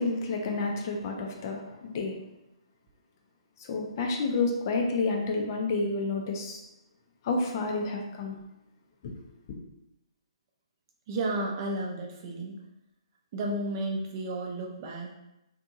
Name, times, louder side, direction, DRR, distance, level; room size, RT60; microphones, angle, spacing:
voice 1, 0.0-2.2 3.6-6.6 7.2-8.3 9.0-9.1, left 3 dB, 40° left, 1 dB, 0.5 m, -29 dB
voice 2, 11.1-12.5 13.3-15.2, right 2 dB, 35° right, 0 dB, 0.5 m, -32 dB
2.7 x 2.6 x 2.4 m, 0.89 s
figure-of-eight pair, 130°, 3 cm